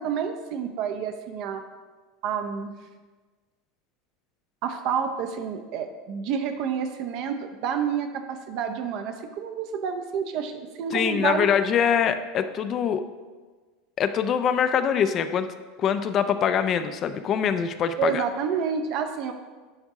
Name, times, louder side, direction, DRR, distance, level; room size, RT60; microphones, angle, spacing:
voice 1, 0.0-1.6 2.2-2.7 4.6-11.5 18.0-19.3, right 7 dB, 50° right, 6 dB, 0.7 m, -29 dB
voice 2, 10.9-13.0 14.0-15.5 15.8-18.2, left 8 dB, 35° left, 10 dB, 0.4 m, -24 dB
9.8 x 3.5 x 4.8 m, 1.3 s
figure-of-eight pair, 75°, 0 cm